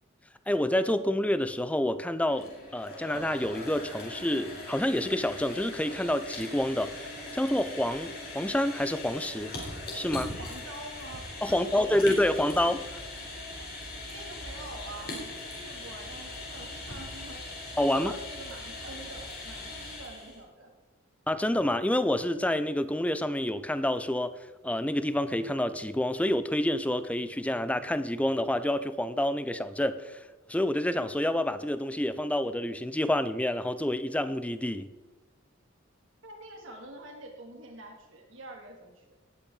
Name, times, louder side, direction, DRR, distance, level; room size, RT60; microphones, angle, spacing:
voice 1, 0.5-9.6 9.9-10.4 11.4-12.8 17.8-18.1 21.3-24.3 24.6-30.2 30.5-34.9, left 1 dB, 5° left, 0.5 m, -28 dB
sound 1, 2.2-20.4, left 2 dB, 50° left, 3.8 m, -40 dB
voice 2, 10.4-12.4 14.1-20.7 36.2-39.2, right 1 dB, 65° right, 2.7 m, -46 dB
17.5 x 9.0 x 4.0 m
head